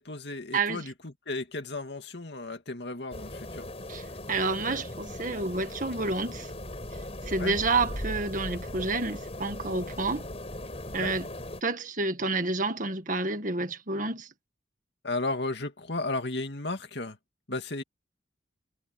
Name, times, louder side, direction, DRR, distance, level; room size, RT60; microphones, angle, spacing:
voice 1, 0.0-3.7 7.4-7.6 11.0-11.1 15.0-17.2 17.5-17.8, left 2 dB, 60° left, 2.5 m, -34 dB
voice 2, 0.5-0.8 3.9-6.5 7.3-10.3 10.9-11.3 11.6-14.3, right 3 dB, 45° right, 1.8 m, -29 dB
sound 1, 3.1-11.6, left 1 dB, 30° left, 5.7 m, -39 dB
head